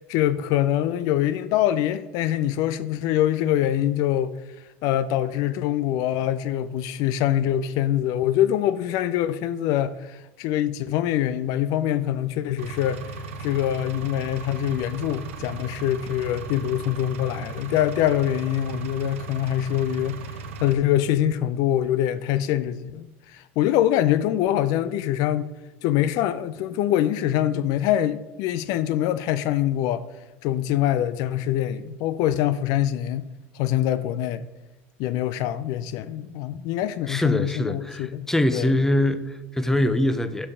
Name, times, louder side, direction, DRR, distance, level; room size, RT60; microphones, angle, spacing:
voice 1, 0.0-4.3 4.8-13.0 13.4-20.2 20.6-25.5 25.8-30.0 30.4-33.2 33.5-34.4 35.0-38.8, left 12 dB, 65° left, 0.4 m, -24 dB
Engine, 12.6-20.7, right 3 dB, 85° right, 0.8 m, -37 dB
voice 2, 37.1-40.5, left 1 dB, 5° left, 0.6 m, -23 dB
6.7 x 5.5 x 4.9 m
hypercardioid pair, 80°, 7 cm